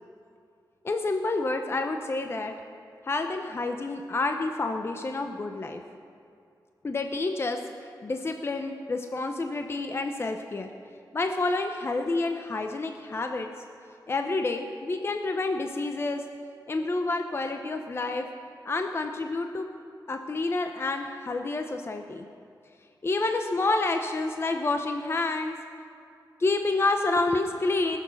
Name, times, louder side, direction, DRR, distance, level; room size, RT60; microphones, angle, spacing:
voice 1, 0.8-2.5 3.0-5.8 6.8-7.6 8.0-10.7 11.1-13.5 14.1-16.2 16.7-18.3 18.6-19.7 20.1-22.3 23.0-25.6 26.4-28.0, left 3 dB, 35° left, 5 dB, 0.6 m, -28 dB
20.0 x 7.1 x 5.7 m, 2.5 s
wide cardioid pair, 135°, 7 cm